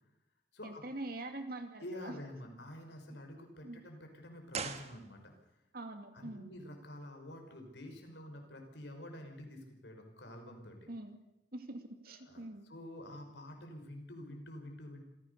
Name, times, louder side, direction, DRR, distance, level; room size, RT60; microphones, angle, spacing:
voice 1, 0.6-2.2 3.1-3.2 3.6-3.8 5.7-6.5 10.9-11.2 11.5-12.7, right 2 dB, 55° right, 6 dB, 2.5 m, -44 dB
voice 2, 1.8-5.3 6.1-10.8 12.1-15.0, left 1 dB, 70° left, 4 dB, 5.5 m, -48 dB
sound 1, 4.5-5.6 5.8-5.9, right 5 dB, 35° right, 1.5 m, -42 dB
27.0 x 16.5 x 6.9 m, 0.91 s
head